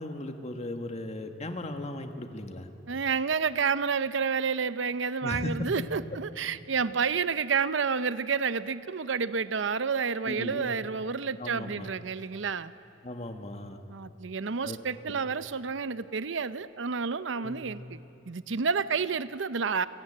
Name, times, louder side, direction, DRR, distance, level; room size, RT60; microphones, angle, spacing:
voice 1, 0.0-2.7 5.2-5.7 10.3-10.7 11.4-11.9 13.0-13.8 14.6-14.8 15.1-15.2 17.3-17.7, left 1 dB, 35° left, 6 dB, 1.6 m, -37 dB
voice 2, 2.9-12.7 13.9-18.0 18.3-19.9, right 5 dB, 75° right, 14 dB, 0.7 m, -30 dB
29.5 x 17.5 x 8.8 m, 2.9 s
head